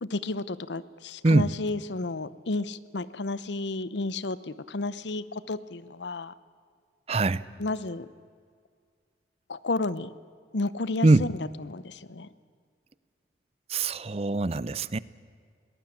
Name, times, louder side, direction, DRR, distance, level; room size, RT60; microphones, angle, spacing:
voice 1, 0.0-6.3 7.6-8.1 9.5-10.1 10.5-11.3 11.6-12.3, left 3 dB, 80° left, 17 dB, 0.8 m, -32 dB
voice 2, 7.1-7.4 11.0-11.3 13.7-15.0, right 2 dB, 35° right, 19 dB, 0.5 m, -22 dB
22.0 x 19.0 x 8.8 m, 2.1 s
head